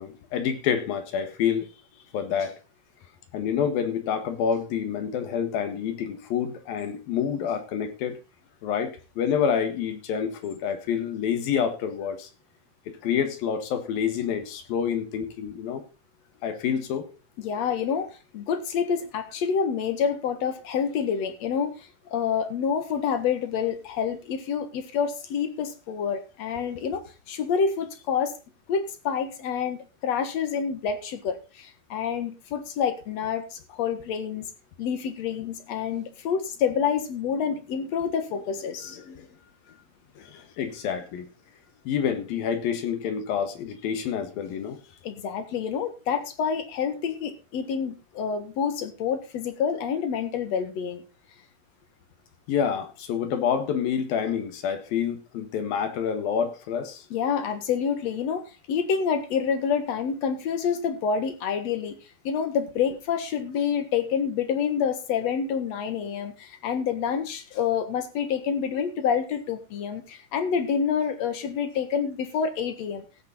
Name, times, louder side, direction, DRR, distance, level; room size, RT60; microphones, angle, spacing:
voice 1, 0.0-1.7 2.1-2.6 3.3-8.2 8.6-12.3 12.9-15.8 16.4-17.1 40.6-41.3 41.8-44.8 52.5-57.0, left 7 dB, 75° left, 8 dB, 3.3 m, -28 dB
voice 2, 17.4-18.1 18.3-28.3 28.7-34.5 34.8-39.3 40.2-40.4 45.0-51.0 57.1-62.0 62.2-73.0, left 7 dB, 55° left, 9 dB, 2.2 m, -28 dB
16.5 x 8.4 x 4.1 m, 0.30 s
omnidirectional pair, 4.4 m